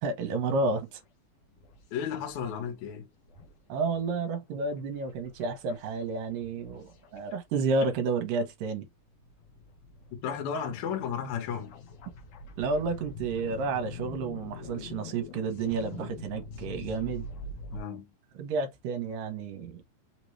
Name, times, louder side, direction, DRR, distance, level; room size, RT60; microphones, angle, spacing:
voice 1, 0.0-1.0 3.7-8.9 12.6-17.3 18.4-19.8, right 4 dB, 70° right, 2.3 m, -31 dB
sound 1, 0.6-1.0 1.4-2.6 2.9-3.0 3.2-8.0 8.5-8.6 9.0-17.8, left 3 dB, 80° left, 1.2 m, -45 dB
voice 2, 1.9-3.1 10.2-11.7 17.7-18.1, left 7 dB, 60° left, 2.3 m, -33 dB
5.5 x 2.9 x 3.1 m
omnidirectional pair, 4.3 m